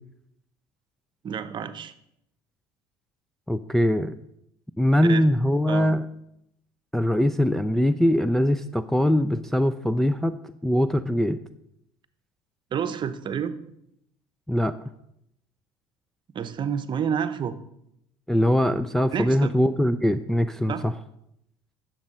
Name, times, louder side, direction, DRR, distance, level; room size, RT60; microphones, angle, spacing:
voice 1, 1.2-1.9 5.0-5.2 5.7-6.0 12.7-13.6 16.3-17.5 19.1-19.5 20.7-20.8, right 7 dB, 40° right, 10 dB, 0.9 m, -29 dB
voice 2, 3.5-4.2 4.8-6.0 6.9-10.4 10.6-11.4 14.5-14.7 18.3-20.9, equal, 5° left, 7 dB, 0.4 m, -22 dB
10.5 x 7.3 x 5.5 m, 0.77 s
supercardioid pair, 100°, 13 cm